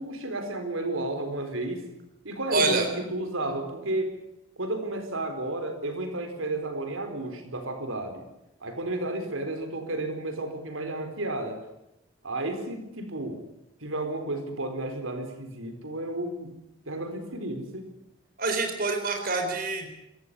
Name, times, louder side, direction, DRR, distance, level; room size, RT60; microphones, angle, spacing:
voice 1, 0.0-1.9 2.2-4.2 4.6-8.2 8.6-11.6 12.2-13.4 13.8-16.5 16.9-17.9, right 2 dB, 85° right, 6 dB, 4.6 m, -32 dB
voice 2, 2.5-2.9 18.4-19.9, right 3 dB, 45° right, 4 dB, 4.1 m, -26 dB
27.0 x 15.0 x 9.8 m, 0.87 s
head